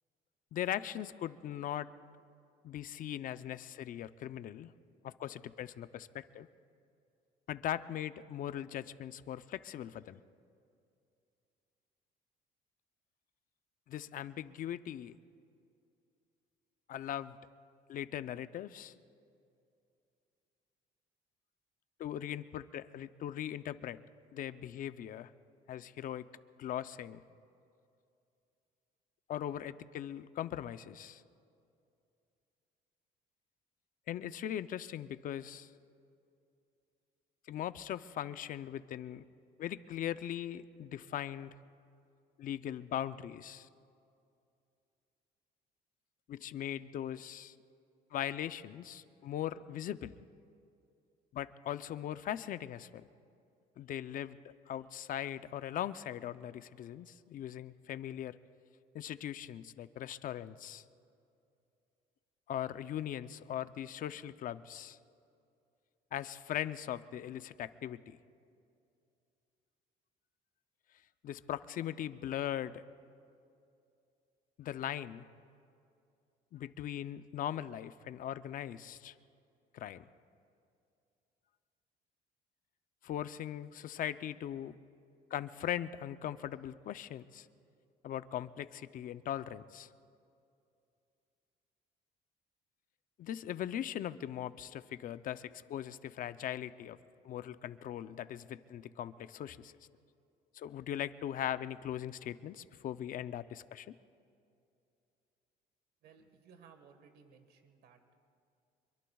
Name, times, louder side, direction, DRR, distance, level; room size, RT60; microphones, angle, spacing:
voice 1, 0.5-1.9 2.6-4.7 5.0-6.5 7.5-10.2 13.9-15.2 16.9-17.4 17.9-18.9 22.0-24.0 24.3-25.3 25.7-26.3 26.6-27.2 29.3-31.2 34.1-35.7 37.5-39.3 39.6-41.5 42.4-43.7 46.3-47.5 48.1-50.2 51.3-53.0 53.8-54.4 54.7-58.4 58.9-60.8 62.5-65.0 66.1-68.2 71.2-72.8 74.6-75.3 76.5-79.1 79.7-80.0 83.0-84.7 85.3-87.5 88.0-89.9 93.2-97.0 97.2-99.7 100.5-104.0, left 11 dB, 55° left, 13 dB, 0.6 m, -40 dB
voice 2, 106.0-108.0, right 6 dB, 70° right, 7 dB, 1.6 m, -60 dB
26.0 x 23.0 x 2.4 m, 2.5 s
cardioid pair, 110°, 17 cm